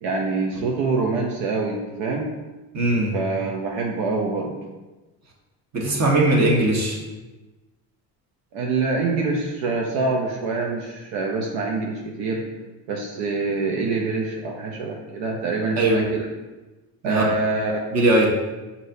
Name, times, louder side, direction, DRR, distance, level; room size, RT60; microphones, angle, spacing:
voice 1, 0.0-2.3 3.1-4.6 8.5-12.4 12.9-16.3 17.0-17.9, right 3 dB, 65° right, -1 dB, 0.7 m, -25 dB
voice 2, 2.7-3.2 5.7-7.0 15.8-16.0 17.0-17.3 17.9-18.3, right 1 dB, 35° right, -2 dB, 1.2 m, -19 dB
6.1 x 2.7 x 2.6 m, 1.2 s
hypercardioid pair, 70°, 47 cm